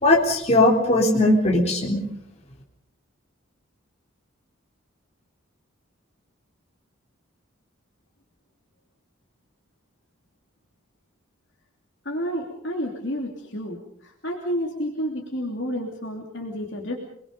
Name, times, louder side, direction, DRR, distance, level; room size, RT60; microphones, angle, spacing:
voice 1, 0.0-2.0, left 2 dB, 30° left, -2 dB, 3.8 m, -19 dB
voice 2, 12.0-17.0, equal, 55° left, 0 dB, 3.0 m, -30 dB
29.0 x 21.0 x 5.4 m, 0.71 s
head